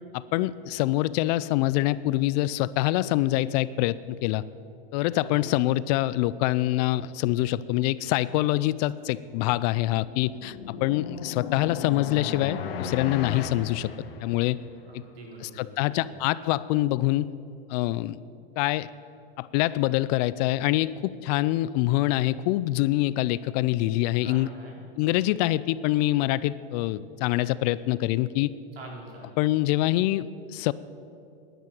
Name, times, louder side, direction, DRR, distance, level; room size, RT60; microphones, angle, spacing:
voice 1, 0.1-4.4 4.9-13.9 14.2-14.6 15.4-17.3 17.7-18.2 18.6-18.9 19.4-24.5 25.0-28.5 29.4-30.7, left 16 dB, 45° left, 18 dB, 0.4 m, -25 dB
voice 2, 5.2-5.7 14.9-16.3 24.2-24.8 28.7-29.4, right 2 dB, 90° right, -1 dB, 4.5 m, -45 dB
sound 1, 9.8-14.7, left 6 dB, 80° left, 1.4 m, -36 dB
10.5 x 10.5 x 9.4 m, 2.5 s
hypercardioid pair, 130°, 29 cm